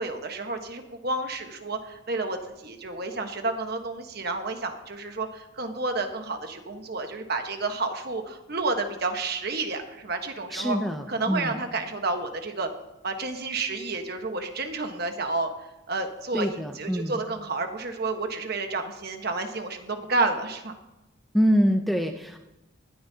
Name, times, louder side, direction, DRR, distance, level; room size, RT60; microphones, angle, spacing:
voice 1, 0.0-10.8 11.1-12.7 13.0-15.5 15.9-16.5 16.7-20.7, right 3 dB, 50° right, 5 dB, 1.3 m, -30 dB
voice 2, 10.5-11.6 16.3-17.2 21.3-22.4, equal, ahead, 4 dB, 0.6 m, -25 dB
19.0 x 13.0 x 2.8 m, 0.94 s
head